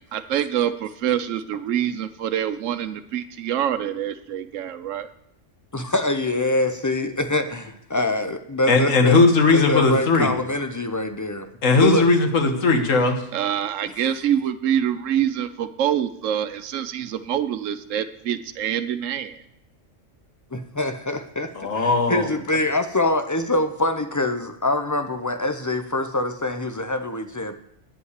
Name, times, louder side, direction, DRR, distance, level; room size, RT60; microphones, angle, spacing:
voice 1, 0.1-5.1 13.3-19.4, right 10 dB, 80° right, 12 dB, 1.0 m, -25 dB
voice 2, 5.7-9.2 9.5-12.1 13.1-13.3 20.5-27.5, left 2 dB, 30° left, 8 dB, 0.3 m, -25 dB
voice 3, 8.7-10.3 11.6-13.2 21.5-22.3, left 3 dB, 80° left, 5 dB, 1.7 m, -18 dB
9.5 x 5.6 x 8.1 m, 0.75 s
omnidirectional pair, 1.3 m